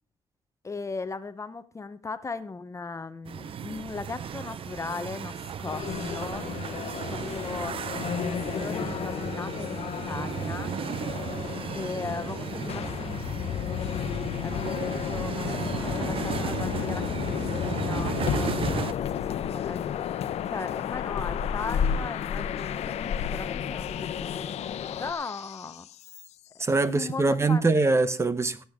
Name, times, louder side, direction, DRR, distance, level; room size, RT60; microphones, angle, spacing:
voice 1, 0.6-6.5 7.1-10.8 11.7-14.1 14.4-18.5 19.0-20.1 20.5-22.9 23.3-24.4 25.0-25.9 26.5-27.6, left 4 dB, 25° left, 0.8 m, -38 dB
sound 1, 3.2-18.9, right 7 dB, 55° right, 0.7 m, -35 dB
sound 2, 5.7-25.1, left 7 dB, 65° left, 1.0 m, -33 dB
sound 3, 12.8-26.6, left 13 dB, 85° left, 0.4 m, -35 dB
voice 2, 26.6-28.6, right 3 dB, 25° right, 0.9 m, -23 dB
18.5 x 8.0 x 3.6 m
cardioid pair, 105°, 11 cm